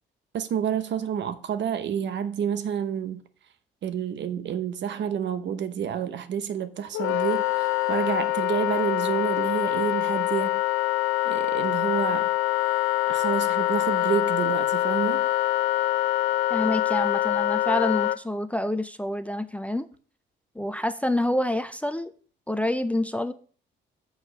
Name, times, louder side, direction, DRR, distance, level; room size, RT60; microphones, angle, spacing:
voice 1, 0.3-3.2 3.8-10.6 11.2-12.3 13.1-15.3, right 8 dB, 65° right, 0.9 m, -29 dB
Wind instrument woodwind instrument, 6.9-18.2, left 16 dB, 85° left, 0.4 m, -25 dB
voice 2, 16.5-19.9 20.6-22.1 22.5-23.3, left 1 dB, 5° left, 0.5 m, -27 dB
6.4 x 4.6 x 6.6 m
cardioid pair, 90°, 20 cm